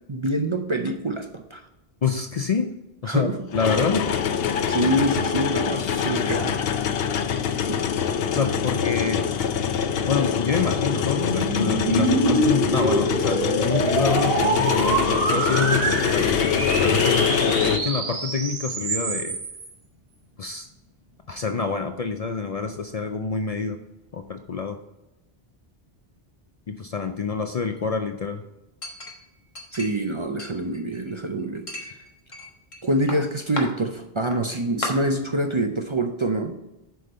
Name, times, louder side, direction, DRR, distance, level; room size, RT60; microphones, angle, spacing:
voice 1, 0.1-1.6 3.1-3.4 4.7-6.8 7.7-7.8 29.7-31.9 32.8-36.6, right 1 dB, 35° right, 5 dB, 0.5 m, -26 dB
sound 1, 0.9-1.0 3.5-17.8, left 7 dB, 75° left, 0.8 m, -24 dB
voice 2, 2.0-2.7 3.0-4.1 8.3-9.3 10.1-19.4 20.4-20.7 21.3-23.8 24.1-24.8 26.7-28.4, left 5 dB, 50° left, 6 dB, 0.5 m, -27 dB
sound 2, 10.5-19.7, right 2 dB, 65° right, 1.2 m, -26 dB
Chink clink, 28.8-30.1 30.4-31.2 31.7-32.8 33.1-33.6 34.3-34.4 34.8-34.9, left 2 dB, 30° left, 1.3 m, -34 dB
7.8 x 5.1 x 4.3 m, 0.95 s
omnidirectional pair, 1.0 m